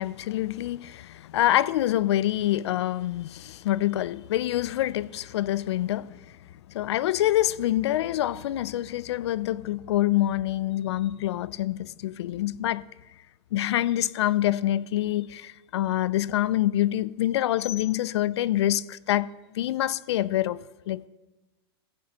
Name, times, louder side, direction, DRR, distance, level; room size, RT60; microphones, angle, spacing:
voice 1, 0.0-6.2 6.7-12.9 13.5-21.1, left 13 dB, 85° left, 0.4 m, -26 dB
14.0 x 9.6 x 2.9 m
supercardioid pair, 130°, 14 cm